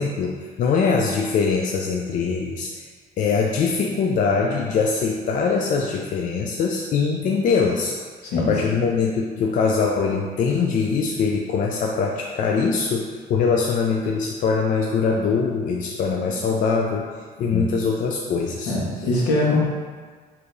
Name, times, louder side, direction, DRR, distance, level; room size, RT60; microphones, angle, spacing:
voice 1, 0.0-2.9 3.2-7.9 8.4-17.1 17.4-18.7, left 5 dB, 50° left, -1 dB, 0.4 m, -22 dB
voice 2, 8.3-8.8 17.4-17.7 18.7-19.6, left 2 dB, 85° left, -5 dB, 1.1 m, -22 dB
4.5 x 2.7 x 2.6 m, 1.5 s
cardioid pair, 110°, 17 cm